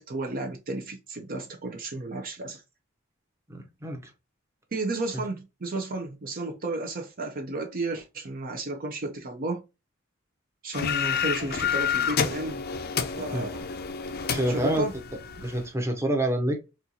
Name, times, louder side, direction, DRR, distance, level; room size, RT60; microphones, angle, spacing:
voice 1, 0.0-2.6 4.7-9.6 10.6-12.6 13.2-13.6 14.5-14.9, right 2 dB, 45° right, 0.6 m, -33 dB
voice 2, 3.5-4.0 5.1-5.2 13.3-13.5 14.3-14.9 15.4-16.5, right 1 dB, 15° right, 0.8 m, -27 dB
sound 1, 10.7-15.7, left 7 dB, 50° left, 0.5 m, -29 dB
4.3 x 2.4 x 2.7 m
head